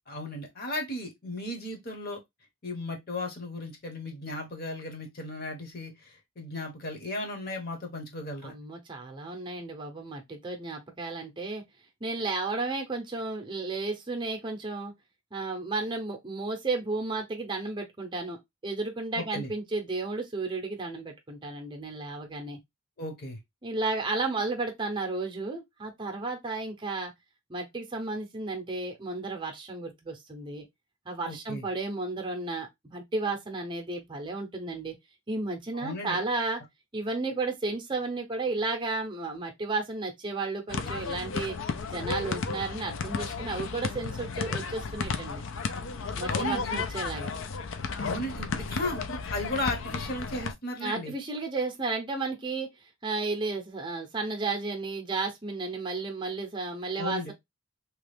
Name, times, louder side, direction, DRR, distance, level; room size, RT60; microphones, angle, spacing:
voice 1, 0.1-2.2 2.6-8.5 19.2-19.5 23.0-23.4 31.2-31.6 35.7-36.2 46.3-46.8 48.0-51.1 57.0-57.3, left 1 dB, 45° left, 1.0 m, -35 dB
voice 2, 8.4-11.6 12.0-14.9 15.3-22.6 23.6-27.1 27.5-30.7 31.1-34.9 35.3-36.6 36.9-41.6 41.9-45.4 46.2-47.3 50.8-57.3, right 3 dB, 20° right, 0.6 m, -33 dB
sound 1, 40.7-50.5, left 4 dB, 65° left, 0.4 m, -33 dB
3.0 x 2.3 x 3.2 m
head